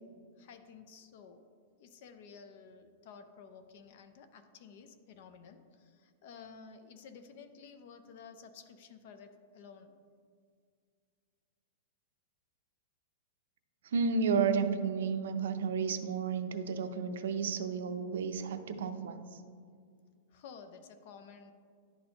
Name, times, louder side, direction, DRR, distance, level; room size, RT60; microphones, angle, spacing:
voice 1, 0.4-1.5 1.8-9.9 20.3-21.5, left 6 dB, 40° left, 8 dB, 0.5 m, -53 dB
voice 2, 13.8-19.4, right 5 dB, 75° right, 9 dB, 0.5 m, -32 dB
11.0 x 4.2 x 2.9 m, 2.1 s
supercardioid pair, 180°, 0 cm